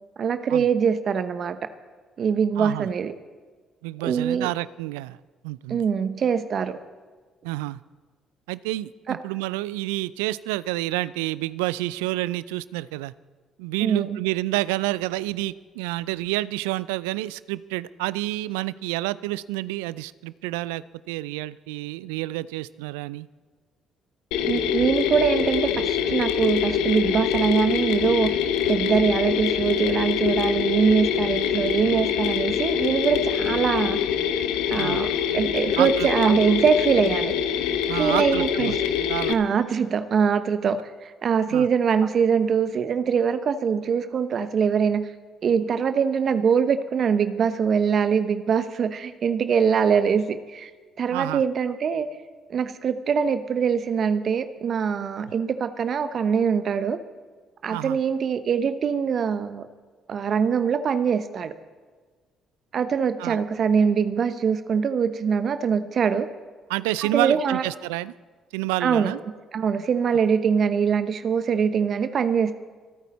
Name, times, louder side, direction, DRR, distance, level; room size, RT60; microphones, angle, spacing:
voice 1, 0.2-1.6 2.2-3.1 4.0-4.5 5.7-6.8 9.1-9.2 13.8-14.2 24.4-28.3 28.7-34.0 34.7-37.3 37.9-38.8 39.3-45.1 45.4-50.7 51.0-52.1 52.5-57.0 57.6-59.7 60.1-61.5 62.7-66.3 67.1-67.6 68.8-69.1 69.5-72.5, right 6 dB, 55° right, 11 dB, 0.8 m, -23 dB
voice 2, 2.6-2.9 3.8-5.2 5.4-5.8 7.4-7.8 8.5-13.1 13.6-23.3 34.8-35.0 35.8-36.1 37.9-38.8 39.1-39.4 41.5-41.7 51.1-51.4 57.7-58.0 63.2-63.4 66.7-68.1 68.5-69.2, right 18 dB, 80° right, 19 dB, 0.3 m, -29 dB
Mechanisms, 24.3-39.3, left 8 dB, 75° left, 0.8 m, -25 dB
25.0 x 9.2 x 4.1 m, 1.5 s
hypercardioid pair, 50°, 0 cm